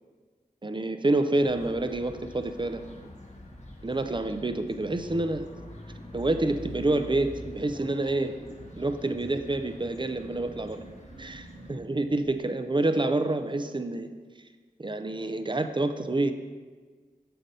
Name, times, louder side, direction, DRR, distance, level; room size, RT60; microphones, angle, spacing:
voice 1, 0.6-3.0 3.8-5.5 6.1-8.4 8.8-10.8 11.2-14.1 14.8-16.3, right 2 dB, 30° right, 9 dB, 0.5 m, -28 dB
sound 1, 1.3-11.7, left 1 dB, 45° left, 1.0 m, -46 dB
sound 2, 7.2-12.4, right 2 dB, 70° right, 0.7 m, -48 dB
6.7 x 3.8 x 5.4 m, 1.4 s
wide cardioid pair, 40°, 16 cm